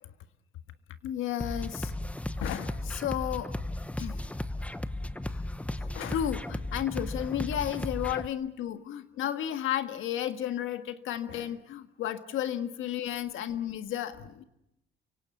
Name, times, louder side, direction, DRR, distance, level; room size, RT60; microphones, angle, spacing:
voice 1, 1.0-1.9 2.4-3.5 4.0-4.2 5.8-14.4, left 11 dB, 85° left, 9 dB, 1.6 m, -33 dB
sound 1, 1.4-8.3, left 1 dB, 5° left, 0.9 m, -35 dB
29.5 x 17.5 x 8.3 m, 0.82 s
cardioid pair, 90°, 20 cm